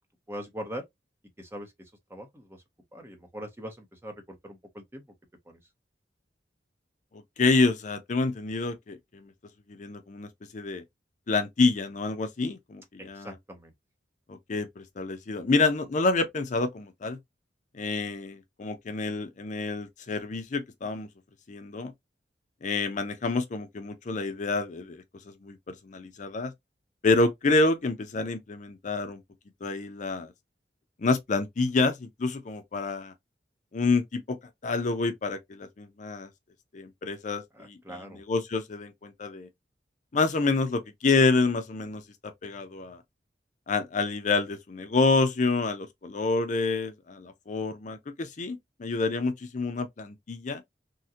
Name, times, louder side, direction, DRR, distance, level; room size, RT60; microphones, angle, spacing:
voice 1, 0.3-0.8 1.4-2.6 2.9-5.0 5.5-5.6 13.0-13.7 37.5-38.2, equal, 15° right, 0.7 m, -42 dB
voice 2, 7.4-9.3 9.7-10.8 11.3-13.3 14.3-17.2 17.7-21.1 21.5-21.9 22.6-25.0 25.4-26.5 27.0-29.2 29.6-30.3 31.0-33.1 33.7-34.4 34.6-36.3 36.7-37.8 38.3-39.5 40.1-43.0 43.7-50.6, left 3 dB, 45° left, 0.5 m, -28 dB
3.7 x 2.1 x 2.7 m
head